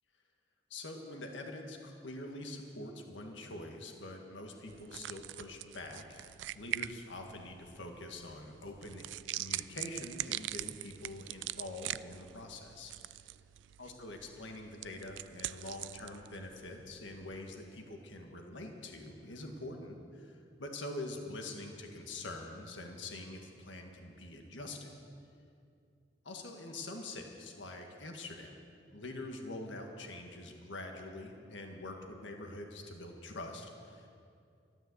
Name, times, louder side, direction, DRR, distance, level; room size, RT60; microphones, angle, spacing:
voice 1, 0.7-9.0 9.3-13.2 13.8-24.9 26.3-28.6 28.9-34.1, left 2 dB, 85° left, 3 dB, 1.8 m, -45 dB
sound 1, 4.7-17.5, right 14 dB, 75° right, 0.3 m, -43 dB
12.5 x 12.5 x 8.0 m, 2.4 s
head